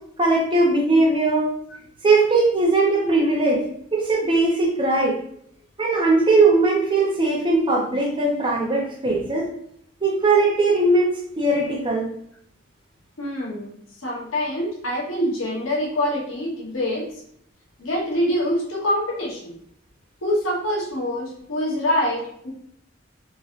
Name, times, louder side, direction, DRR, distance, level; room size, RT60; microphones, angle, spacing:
voice 1, 0.2-1.5 2.0-3.6 3.9-5.2 5.8-9.5 10.0-12.1, right 2 dB, 25° right, -2 dB, 0.6 m, -19 dB
voice 2, 13.2-13.7 14.0-17.1 17.8-19.6 20.2-22.5, equal, 80° left, -3 dB, 0.9 m, -25 dB
3.1 x 2.6 x 2.5 m, 0.69 s
head